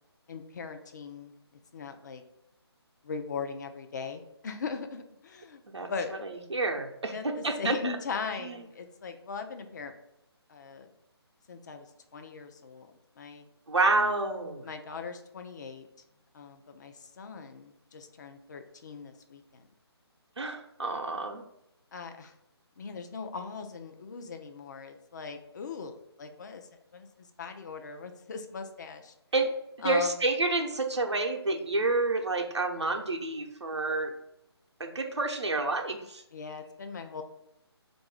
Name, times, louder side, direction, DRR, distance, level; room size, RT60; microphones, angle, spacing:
voice 1, 0.3-1.3 1.7-2.2 3.0-5.6 5.9-6.1 7.1-9.9 10.5-10.9 11.5-11.9 12.1-13.5 14.6-15.9 16.3-19.6 21.9-22.3 22.8-26.7 26.9-29.1 29.8-30.2 36.3-37.2, left 5 dB, 40° left, 6 dB, 0.5 m, -39 dB
voice 2, 6.5-7.9 8.4-8.6 13.7-14.6 20.4-21.4 29.3-29.5 29.8-34.1 34.8-36.2, right 3 dB, 85° right, 3 dB, 0.7 m, -29 dB
4.0 x 2.6 x 4.7 m, 0.84 s
figure-of-eight pair, 150°, 14 cm